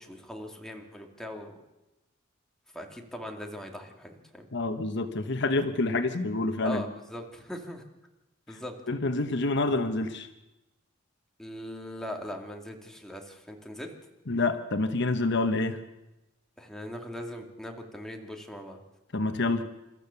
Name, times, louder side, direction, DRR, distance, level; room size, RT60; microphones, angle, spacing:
voice 1, 0.0-1.5 2.7-4.5 6.6-7.8 8.5-8.7 11.4-13.9 16.6-18.8, equal, 5° left, 1 dB, 2.4 m, -40 dB
voice 2, 4.5-6.8 8.9-10.3 14.3-15.8 19.1-19.6, left 2 dB, 60° left, 8 dB, 1.1 m, -27 dB
28.5 x 13.5 x 7.1 m, 0.99 s
head